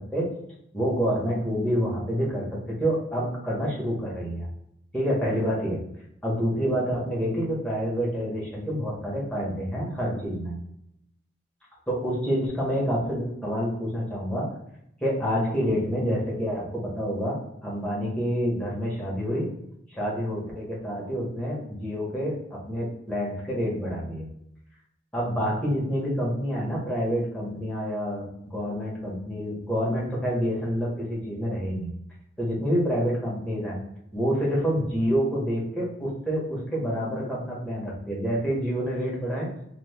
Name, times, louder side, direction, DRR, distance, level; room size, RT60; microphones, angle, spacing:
voice 1, 0.7-4.5 4.9-5.8 6.2-10.5 11.9-14.5 15.0-19.5 19.9-24.3 25.1-31.9 32.4-33.8 34.1-39.5, equal, 5° left, -6 dB, 1.1 m, -28 dB
3.0 x 2.4 x 3.4 m, 0.79 s
head